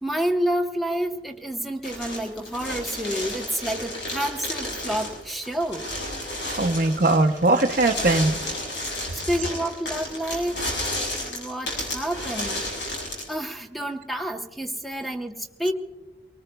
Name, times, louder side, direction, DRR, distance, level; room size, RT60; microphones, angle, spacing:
voice 1, 0.0-5.9 8.9-10.7 11.2-12.6 12.9-15.7, right 1 dB, ahead, 0.9 m, -29 dB
sound 1, 1.8-13.3, left 1 dB, 70° left, 6.6 m, -32 dB
voice 2, 6.5-8.4 9.1-9.2, right 2 dB, 45° right, 0.7 m, -20 dB
25.0 x 19.0 x 2.3 m
head